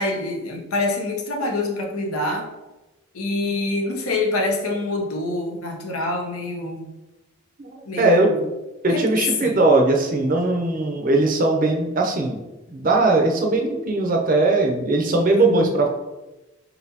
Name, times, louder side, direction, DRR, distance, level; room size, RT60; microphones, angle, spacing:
voice 1, 0.0-2.5 3.1-6.9 7.9-8.4 8.9-9.6 15.3-15.8, left 2 dB, 85° left, 1 dB, 0.8 m, -26 dB
voice 2, 7.6-8.3 8.8-12.4 12.7-15.9, right 2 dB, 40° right, 2 dB, 0.5 m, -19 dB
4.1 x 3.9 x 2.8 m, 1.0 s
head